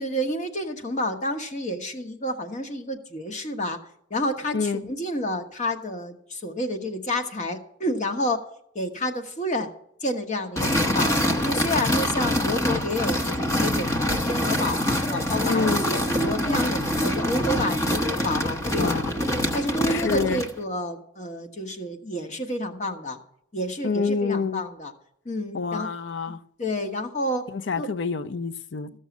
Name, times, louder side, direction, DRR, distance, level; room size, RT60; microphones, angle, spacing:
voice 1, 0.0-3.8 4.1-8.4 8.7-9.7 10.0-11.1 11.4-14.8 15.1-19.2 19.5-23.2 23.5-24.9 25.2-25.9 26.6-27.5 27.8-27.9, left 1 dB, 35° left, 1.1 m, -29 dB
sound 1, 10.6-20.6, left 1 dB, 15° left, 0.7 m, -25 dB
voice 2, 15.5-15.8 18.8-19.0 19.9-20.4 23.8-24.6 25.5-26.4 27.5-28.9, left 5 dB, 60° left, 0.5 m, -27 dB
14.5 x 6.4 x 7.2 m
head